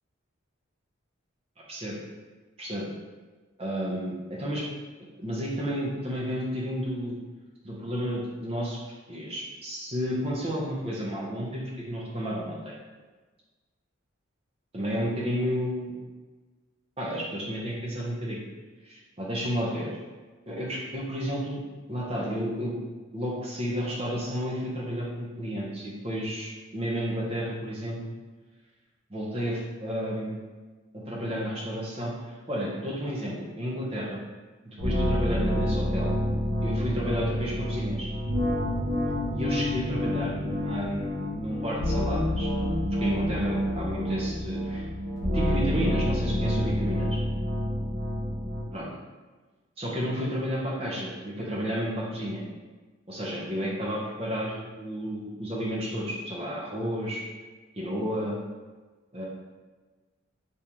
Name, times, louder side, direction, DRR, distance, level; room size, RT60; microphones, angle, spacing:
voice 1, 3.6-4.7 5.2-7.2 7.6-8.8 9.1-12.7 14.7-16.0 17.0-18.4 18.8-19.9 20.5-21.6 21.9-22.8 23.1-28.0 29.1-30.4 30.9-34.2 34.8-36.1 36.6-38.1 39.3-42.5 43.0-44.8 45.3-47.2 48.7-48.9 49.8-52.4 53.1-57.2 57.8-58.4 59.1-59.2, equal, 30° right, -4 dB, 0.7 m, -31 dB
sound 1, 34.8-48.6, equal, 65° right, 0.8 m, -28 dB
2.9 x 2.6 x 3.5 m, 1.3 s
head